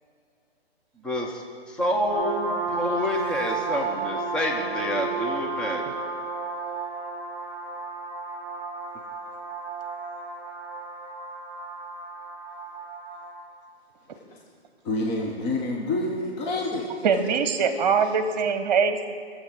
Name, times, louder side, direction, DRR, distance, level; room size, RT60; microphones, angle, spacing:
voice 1, 1.0-1.4 1.7-5.8, left 1 dB, 5° left, 0 dB, 0.6 m, -28 dB
sound 1, 2.1-13.4, right 4 dB, 15° right, 3.3 m, -33 dB
voice 2, 14.1-14.4 14.8-16.9 17.6-17.8, left 2 dB, 25° left, -2 dB, 1.2 m, -28 dB
voice 3, 17.0-19.1, right 6 dB, 45° right, 9 dB, 1.1 m, -22 dB
20.5 x 7.5 x 6.1 m, 2.2 s
hypercardioid pair, 140°, 32 cm